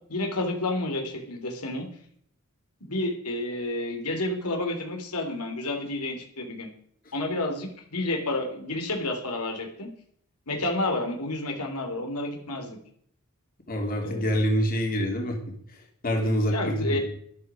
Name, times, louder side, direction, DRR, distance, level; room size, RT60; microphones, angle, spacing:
voice 1, 0.1-1.9 2.8-6.7 7.1-9.9 10.5-12.8 14.0-14.2 16.5-17.0, left 2 dB, 90° left, 3 dB, 3.2 m, -30 dB
voice 2, 13.7-15.4 16.0-17.0, equal, 40° left, 1 dB, 2.8 m, -26 dB
13.0 x 11.5 x 5.1 m, 0.62 s
head